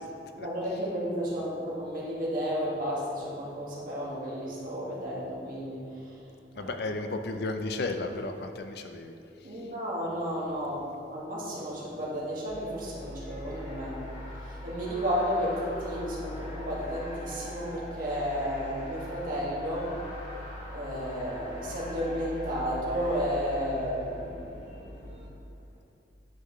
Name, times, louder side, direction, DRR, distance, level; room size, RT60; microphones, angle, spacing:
voice 1, 0.3-6.2 6.6-6.7 9.4-10.8 11.1-14.0 14.4-19.9 20.7-25.2, equal, 50° right, -6 dB, 1.8 m, -32 dB
voice 2, 6.6-9.1 9.4-9.6, left 2 dB, 60° left, 6 dB, 0.5 m, -34 dB
sound 1, 12.5-25.3, left 1 dB, 35° left, 1.8 m, -42 dB
9.8 x 5.8 x 3.2 m, 2.6 s
head